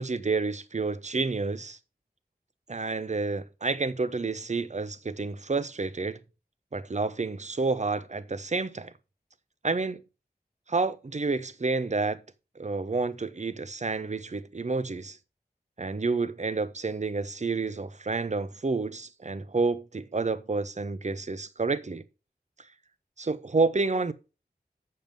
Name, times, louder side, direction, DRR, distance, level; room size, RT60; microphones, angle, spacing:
voice 1, 0.0-1.8 2.7-6.2 6.7-8.9 9.6-10.0 10.7-12.2 12.6-15.2 15.8-22.0 23.2-24.1, right 3 dB, 45° right, 0.7 m, -29 dB
7.4 x 6.6 x 5.2 m
wide cardioid pair, 55°, 17 cm